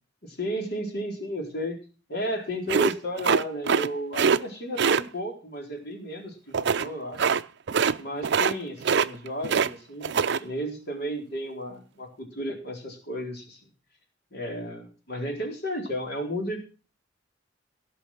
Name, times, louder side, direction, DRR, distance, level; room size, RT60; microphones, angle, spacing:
voice 1, 0.2-1.8 2.1-7.3 8.0-13.6 14.3-16.6, equal, 60° left, 2 dB, 4.3 m, -33 dB
sound 1, 2.7-3.9 4.1-4.4 4.8-5.0 6.5-6.9 7.2-7.4 7.7-8.0 8.2-8.6 8.8-9.7 10.0-10.4, right 6 dB, 65° right, 0.5 m, -23 dB
17.5 x 6.2 x 6.3 m, 0.35 s
head